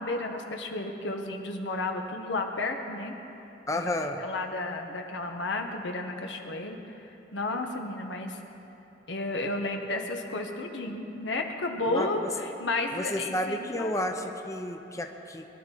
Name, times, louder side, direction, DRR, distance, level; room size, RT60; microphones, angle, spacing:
voice 1, 0.0-3.1 3.7-3.8 4.2-6.8 7.3-8.4 9.1-14.1, left 2 dB, 90° left, 3 dB, 1.4 m, -32 dB
voice 2, 3.7-4.2 11.9-12.3 12.9-15.5, left 1 dB, 20° left, 4 dB, 0.8 m, -31 dB
22.5 x 12.0 x 4.6 m, 3.0 s
head